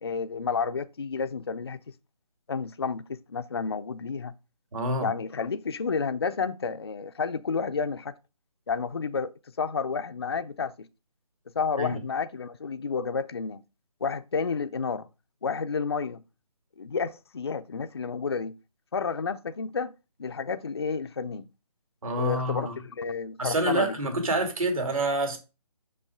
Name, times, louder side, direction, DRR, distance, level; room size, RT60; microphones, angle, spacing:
voice 1, 0.0-1.8 2.5-4.3 5.0-8.1 8.7-10.9 11.5-13.6 14.0-15.1 15.4-16.2 16.8-18.6 18.9-19.9 20.2-21.5 22.2-24.1, left 5 dB, 40° left, 0.4 m, -31 dB
voice 2, 4.7-5.1 11.8-12.0 22.0-22.7 23.4-25.4, right 1 dB, 60° right, 2.6 m, -27 dB
6.2 x 5.4 x 5.0 m
hypercardioid pair, 170°, 20 cm